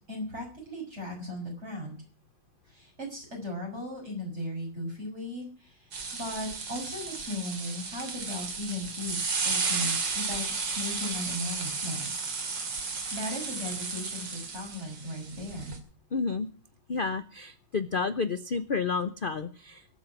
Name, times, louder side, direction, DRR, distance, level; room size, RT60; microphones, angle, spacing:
voice 1, 0.1-2.0 2.7-10.5 10.8-12.2 12.9-15.7, left 1 dB, 35° right, -1 dB, 6.9 m, -37 dB
sound 1, 5.9-15.8, right 4 dB, 65° right, 3.1 m, -33 dB
voice 2, 16.1-16.5 16.9-19.9, left 4 dB, 60° left, 13 dB, 0.5 m, -30 dB
22.5 x 8.5 x 6.0 m, 0.39 s
omnidirectional pair, 2.1 m